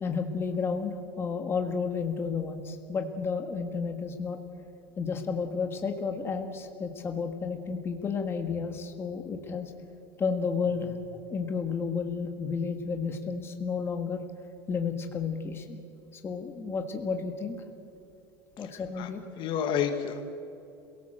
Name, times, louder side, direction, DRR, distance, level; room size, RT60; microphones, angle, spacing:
voice 1, 0.0-4.4 5.0-9.7 10.2-14.2 14.7-15.8 16.2-17.6 18.6-19.2, left 5 dB, 20° left, 5 dB, 1.6 m, -32 dB
voice 2, 18.6-19.1 19.4-20.2, left 8 dB, 45° left, 8 dB, 1.5 m, -30 dB
27.0 x 17.5 x 7.8 m, 2.7 s
cardioid pair, 155°, 11 cm